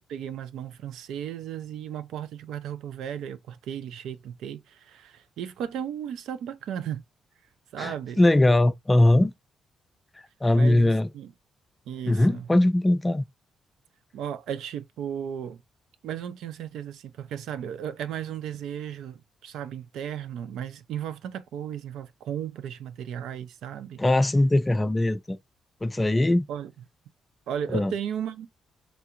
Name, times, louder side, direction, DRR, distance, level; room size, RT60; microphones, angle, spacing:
voice 1, 0.1-7.0 7.7-8.2 10.5-11.3 11.9-12.5 14.1-15.6 16.0-24.0 26.5-26.7 27.5-28.5, right 9 dB, 90° right, 0.4 m, -35 dB
voice 2, 7.8-9.3 10.4-11.1 12.1-13.2 24.0-25.4 25.8-26.5 27.7-27.9, left 1 dB, 15° left, 0.3 m, -21 dB
3.4 x 2.4 x 2.7 m
cardioid pair, 135°, 0 cm